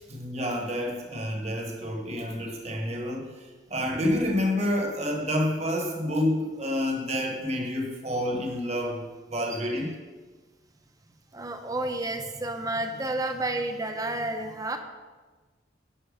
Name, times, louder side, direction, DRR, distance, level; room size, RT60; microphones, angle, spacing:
voice 1, 0.1-9.0 9.3-9.9, left 1 dB, 35° right, 2 dB, 1.2 m, -29 dB
voice 2, 11.3-14.8, right 2 dB, 20° right, 6 dB, 0.7 m, -30 dB
10.0 x 5.9 x 5.2 m, 1.3 s
head